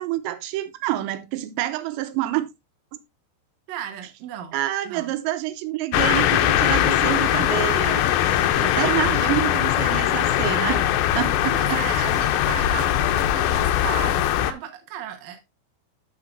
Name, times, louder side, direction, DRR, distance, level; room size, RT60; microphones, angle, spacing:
voice 1, 0.0-2.5 4.5-10.9 11.1-11.8, right 15 dB, 90° right, 3.0 m, -27 dB
voice 2, 3.7-4.6 4.8-5.1 8.4-9.3 11.5-15.4, right 9 dB, 65° right, 1.7 m, -35 dB
sound 1, 5.9-14.5, left 12 dB, 85° left, 2.1 m, -21 dB
13.0 x 5.7 x 2.5 m
omnidirectional pair, 5.1 m